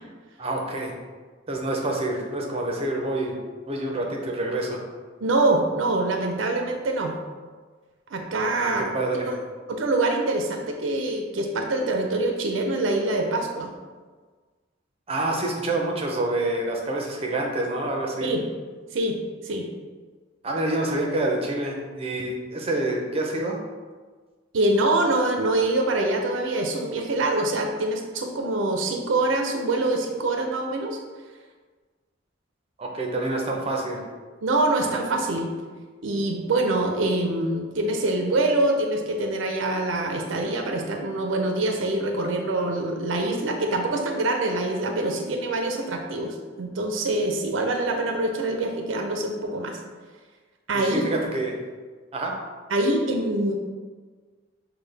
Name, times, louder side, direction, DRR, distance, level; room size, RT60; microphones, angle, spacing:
voice 1, 0.4-0.9 1.5-3.4 3.7-4.8 8.6-9.3 15.1-18.3 20.4-23.6 32.8-34.0 50.7-51.5 52.1-52.3, right 2 dB, 30° right, 0 dB, 0.6 m, -27 dB
voice 2, 5.2-7.1 8.1-8.9 9.2-9.4 9.7-13.7 18.2-18.4 18.9-19.2 19.4-19.7 24.5-31.0 34.4-35.5 36.0-49.8 50.7-51.0 52.7-53.6, right 2 dB, 90° right, 3 dB, 0.5 m, -25 dB
6.3 x 2.2 x 3.3 m, 1.4 s
head